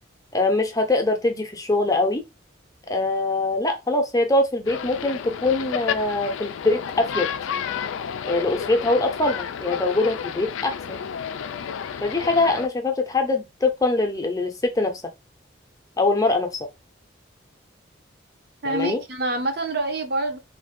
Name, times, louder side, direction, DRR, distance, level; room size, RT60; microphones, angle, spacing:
voice 1, 0.3-2.2 2.9-7.3 8.2-11.0 12.0-15.0 16.0-16.6 18.6-19.0, left 2 dB, 20° left, 0.6 m, -23 dB
sound 1, 4.7-12.7, left 7 dB, 85° left, 0.3 m, -31 dB
voice 2, 18.6-20.4, right 2 dB, 55° right, 0.7 m, -26 dB
3.3 x 2.5 x 3.6 m
head